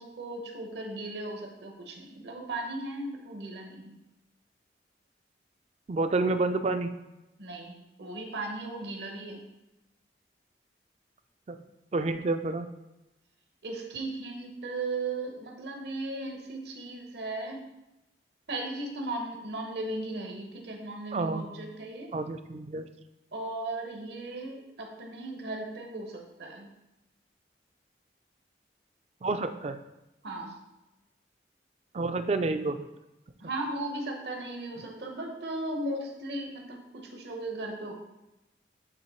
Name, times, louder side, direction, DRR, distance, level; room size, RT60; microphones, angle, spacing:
voice 1, 0.0-3.9 7.4-9.4 13.6-17.6 18.5-22.1 23.3-26.7 30.2-30.5 33.4-37.9, right 2 dB, 70° right, 2 dB, 1.0 m, -36 dB
voice 2, 5.9-6.9 11.5-11.6 11.9-12.7 21.1-21.5 22.1-22.9 29.2-29.8 31.9-32.9, right 3 dB, 35° right, 9 dB, 0.3 m, -29 dB
8.6 x 3.1 x 4.3 m, 0.96 s
head